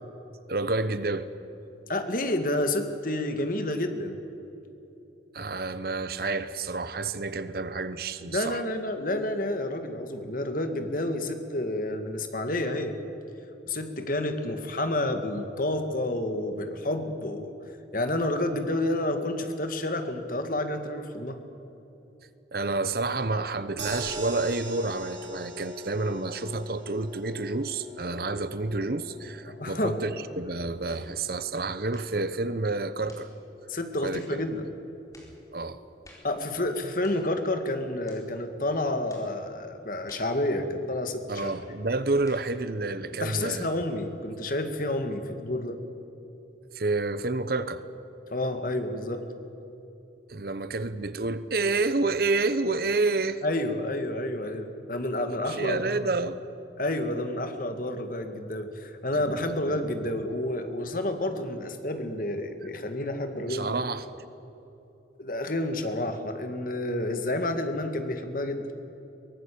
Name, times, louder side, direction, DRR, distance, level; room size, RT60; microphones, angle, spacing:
voice 1, 0.5-1.3 5.3-8.6 22.5-33.3 34.0-34.4 35.5-35.8 41.3-43.7 46.7-47.8 50.3-53.4 55.5-56.4 59.1-59.9 63.5-64.1, right 3 dB, 55° right, 13 dB, 0.9 m, -29 dB
voice 2, 1.9-4.2 8.3-12.9 13.7-17.5 17.9-21.4 29.5-30.2 33.7-34.7 36.2-41.5 43.1-45.8 48.3-49.2 53.4-56.0 56.8-63.8 65.2-68.7, left 1 dB, 50° left, 7 dB, 2.0 m, -30 dB
sound 1, 23.8-36.0 36.4-36.5 36.8-36.9, equal, 70° right, 5.0 m, -42 dB
sound 2, 30.9-31.1 31.9-32.2 33.1-33.3 34.1-34.4 35.1-35.4 36.0-36.3 37.0-37.3 38.1-38.3 39.1-39.3 40.1-40.4 41.4-41.7 42.3-42.5 43.4-43.7, left 2 dB, 20° left, 4.1 m, -53 dB
22.5 x 19.0 x 8.6 m, 2.9 s
head